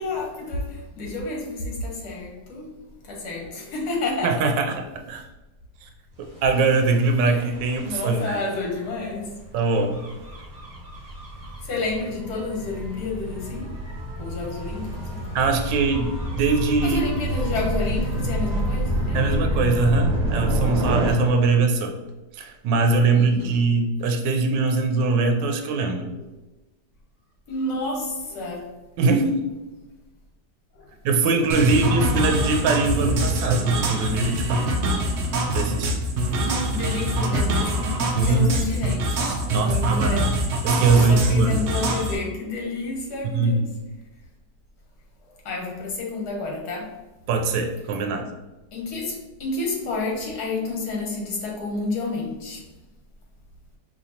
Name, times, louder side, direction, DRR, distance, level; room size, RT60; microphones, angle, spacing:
voice 1, 0.0-2.7 3.0-4.3 7.3-7.4 7.8-9.3 11.6-13.7 14.2-15.4 16.8-19.3 23.0-23.7 27.5-28.7 30.7-30.9 36.3-39.2 39.5-40.3 40.9-43.6 45.2-46.9 48.7-52.7, left 3 dB, 65° left, -1 dB, 1.5 m, -30 dB
voice 2, 4.2-5.2 5.8-5.9 6.4-8.4 9.5-10.1 15.3-17.0 19.1-22.0 22.3-26.1 29.0-29.4 31.0-34.6 35.5-36.0 38.2-38.5 39.5-40.3 40.6-41.6 43.3-43.7 47.3-48.3, right 3 dB, 85° right, 4 dB, 1.2 m, -22 dB
Gull seagull / Waves surf / Siren, 6.4-21.1, right 1 dB, 30° right, 0.8 m, -29 dB
sound 1, 31.5-42.2, right 1 dB, 65° right, 0.7 m, -24 dB
5.1 x 3.0 x 2.8 m, 1.1 s
omnidirectional pair, 1.9 m